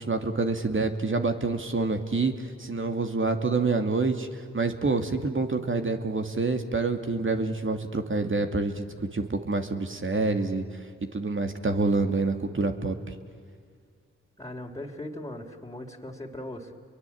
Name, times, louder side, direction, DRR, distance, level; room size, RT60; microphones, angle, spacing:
voice 1, 0.0-10.7 11.1-13.0, right 3 dB, 40° right, 6 dB, 2.5 m, -27 dB
voice 2, 14.4-16.7, left 1 dB, 10° left, 0 dB, 3.5 m, -39 dB
30.0 x 22.5 x 8.7 m, 2.2 s
supercardioid pair, 40°, 30 cm